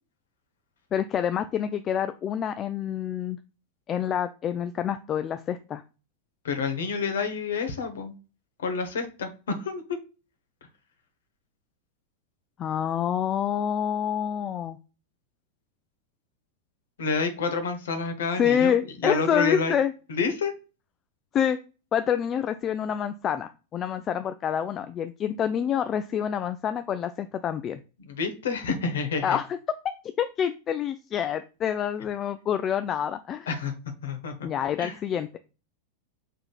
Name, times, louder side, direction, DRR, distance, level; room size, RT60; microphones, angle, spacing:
voice 1, 0.9-3.4 3.9-5.8 12.6-14.8 18.4-19.9 21.3-21.6 21.9-27.8 29.2-29.6 30.2-33.5 34.4-35.3, left 9 dB, 30° left, 10 dB, 0.3 m, -27 dB
voice 2, 6.4-8.1 8.6-9.8 17.0-18.7 19.0-19.8 20.1-20.5 28.0-29.4 33.5-33.7 34.0-34.5 34.8-35.0, left 4 dB, 60° left, 8 dB, 1.0 m, -29 dB
5.7 x 3.7 x 2.4 m, 0.32 s
figure-of-eight pair, 90°, 0 cm